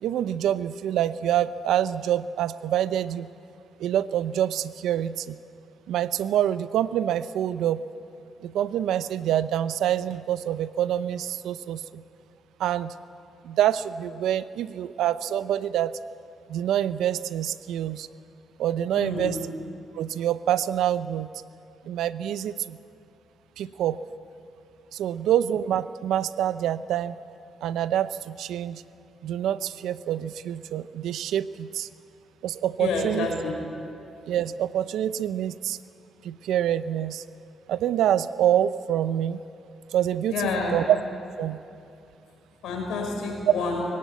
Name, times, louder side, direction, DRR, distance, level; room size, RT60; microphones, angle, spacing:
voice 1, 0.0-3.3 3.8-5.4 5.9-7.8 8.4-12.0 12.6-12.9 13.4-16.0 16.5-18.1 18.6-19.4 19.9-21.3 21.8-22.8 23.6-24.0 24.9-27.2 27.6-28.8 29.2-31.9 32.4-33.3 34.3-35.8 36.2-37.2 37.7-39.4 39.9-40.3 40.7-41.0 41.4-41.6 43.5-43.6, right 11 dB, 80° right, 15 dB, 0.6 m, -26 dB
voice 2, 18.9-19.4 32.8-33.6 40.3-40.8 42.6-43.8, left 4 dB, 80° left, 1 dB, 5.7 m, -28 dB
21.0 x 18.0 x 9.3 m, 2.6 s
supercardioid pair, 60°, 0 cm